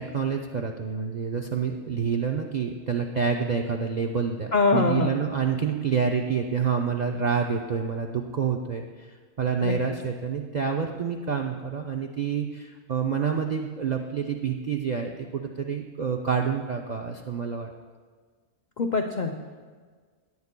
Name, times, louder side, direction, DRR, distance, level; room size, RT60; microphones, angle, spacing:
voice 1, 0.0-17.7, right 6 dB, 70° right, 2 dB, 0.4 m, -28 dB
voice 2, 4.5-5.2 9.6-9.7 18.8-19.4, left 3 dB, 85° left, 3 dB, 0.4 m, -23 dB
17.5 x 9.5 x 2.2 m, 1.5 s
omnidirectional pair, 1.5 m